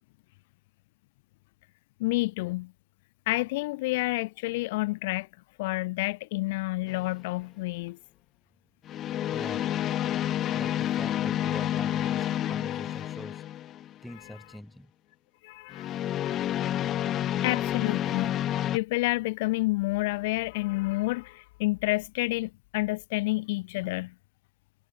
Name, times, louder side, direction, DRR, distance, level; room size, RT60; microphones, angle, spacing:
voice 1, 2.0-2.7 3.3-5.3 5.6-8.0 14.2-14.4 15.4-16.0 16.2-16.4 17.4-18.3 18.7-24.1, left 22 dB, 65° left, 0.9 m, -29 dB
sound 1, 6.9-7.2 8.9-13.9 15.7-18.8, left 12 dB, 40° left, 0.3 m, -29 dB
voice 2, 9.3-9.7 10.5-13.4 14.0-14.9, left 1 dB, 5° left, 4.3 m, -43 dB
figure-of-eight pair, 75°, 0 cm